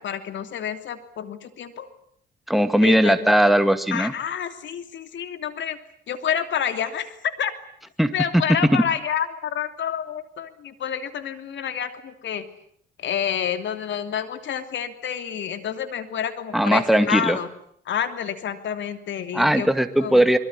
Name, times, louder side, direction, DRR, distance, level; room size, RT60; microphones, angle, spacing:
voice 1, 0.0-1.9 2.8-3.3 3.9-5.8 6.1-7.5 8.1-12.4 13.0-17.5 17.8-19.7 20.0-20.3, left 8 dB, 70° left, 9 dB, 3.1 m, -28 dB
voice 2, 2.5-4.1 8.0-8.8 16.5-17.4 19.3-20.4, equal, ahead, 9 dB, 2.2 m, -19 dB
24.5 x 23.0 x 9.8 m, 0.67 s
cardioid pair, 90°, 20 cm